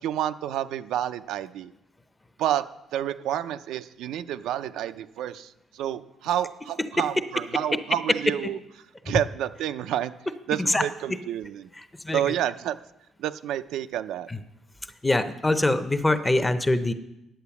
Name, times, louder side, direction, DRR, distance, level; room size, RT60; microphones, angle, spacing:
voice 1, 0.0-1.7 2.4-2.6 2.9-8.6 9.1-10.1 10.5-11.7 12.1-12.8 13.2-14.3, right 11 dB, 85° right, 10 dB, 0.5 m, -29 dB
voice 2, 15.0-16.9, left 2 dB, 10° left, 10 dB, 0.7 m, -23 dB
10.0 x 8.4 x 7.0 m, 0.88 s
cardioid pair, 150°, 0 cm